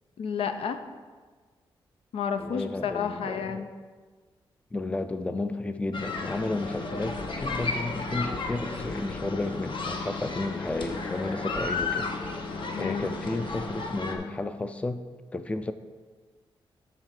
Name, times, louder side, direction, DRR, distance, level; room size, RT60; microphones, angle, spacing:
voice 1, 0.2-0.8 2.1-3.7 12.7-13.1, left 6 dB, 80° left, 8 dB, 0.6 m, -31 dB
voice 2, 2.4-3.7 4.7-12.1 12.8-15.0 15.3-15.7, left 2 dB, 15° left, 10 dB, 0.4 m, -32 dB
sound 1, 5.9-14.2, left 3 dB, 60° left, 0.9 m, -33 dB
9.5 x 3.3 x 6.6 m, 1.5 s
cardioid pair, 95°, 9 cm